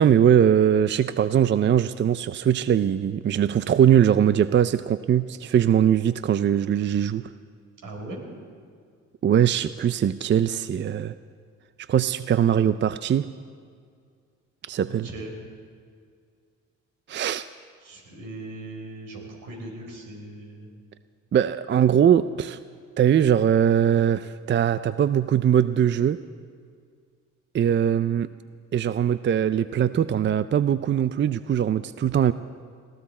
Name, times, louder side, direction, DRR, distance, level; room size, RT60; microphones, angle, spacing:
voice 1, 0.0-7.2 9.2-11.1 11.9-13.3 14.7-15.1 17.1-17.5 21.3-22.6 23.0-26.2 27.5-28.3 28.7-32.3, right 9 dB, 35° right, 14 dB, 0.5 m, -21 dB
voice 2, 7.8-8.2 14.9-15.3 17.8-20.7, right 2 dB, 75° right, 1 dB, 4.3 m, -39 dB
20.5 x 15.0 x 4.3 m, 2.1 s
supercardioid pair, 70°, 33 cm